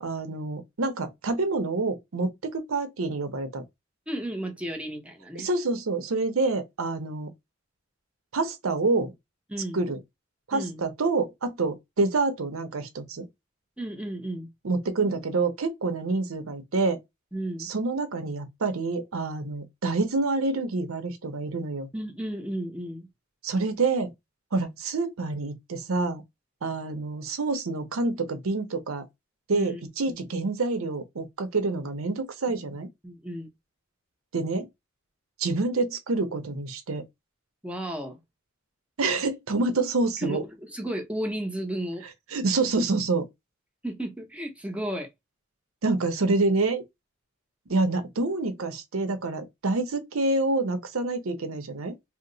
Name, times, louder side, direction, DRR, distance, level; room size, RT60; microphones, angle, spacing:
voice 1, 0.0-3.6 5.4-7.3 8.3-9.1 9.7-10.0 10.5-13.3 14.6-17.0 17.6-21.9 23.4-24.1 24.5-26.2 26.6-29.0 29.5-32.9 34.3-34.7 35.4-37.0 39.0-40.4 42.3-43.2 45.8-46.8 47.7-51.9, right 3 dB, 90° right, 0.7 m, -27 dB
voice 2, 4.1-5.5 9.5-9.8 10.5-10.8 13.8-14.5 17.3-17.7 21.9-23.1 29.5-29.8 30.1-30.2 33.0-33.5 37.6-38.2 40.2-42.0 43.8-45.1, right 1 dB, 5° right, 0.7 m, -33 dB
2.8 x 2.0 x 3.8 m
head